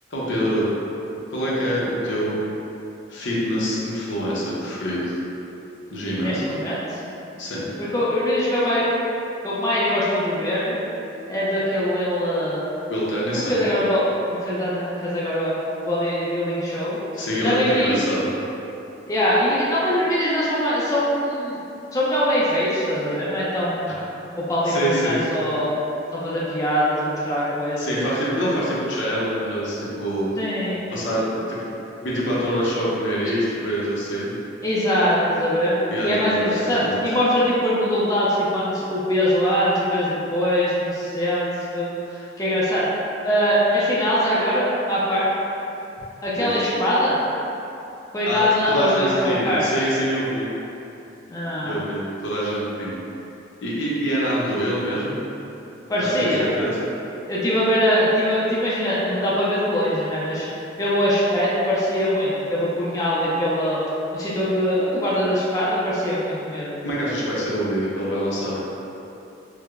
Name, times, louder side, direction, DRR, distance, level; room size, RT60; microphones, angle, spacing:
voice 1, 0.1-0.7 1.3-2.4 3.1-5.2 5.9-6.5 7.4-7.7 12.9-13.6 17.2-18.3 23.9-24.0 24.6-25.2 27.8-30.3 30.9-31.6 32.0-34.3 35.9-36.5 36.8-37.0 46.4-46.6 48.3-48.4 48.7-50.5 51.6-52.9 53.6-55.2 56.0-56.8 66.8-68.6, equal, 70° left, -6 dB, 0.7 m, -25 dB
voice 2, 6.2-7.0 7.9-8.9 9.4-10.8 11.3-12.6 13.5-14.0 14.4-17.0 17.4-18.0 19.1-21.6 21.9-24.0 24.4-25.7 26.1-27.9 30.4-30.9 34.6-35.7 36.0-41.5 41.7-41.9 42.4-42.8 43.2-45.3 46.2-47.2 48.1-49.7 51.3-51.8 55.9-56.5 57.3-60.5 60.8-63.8 64.1-66.8, equal, 20° left, -9 dB, 0.5 m, -22 dB
4.6 x 2.1 x 2.4 m, 2.8 s
head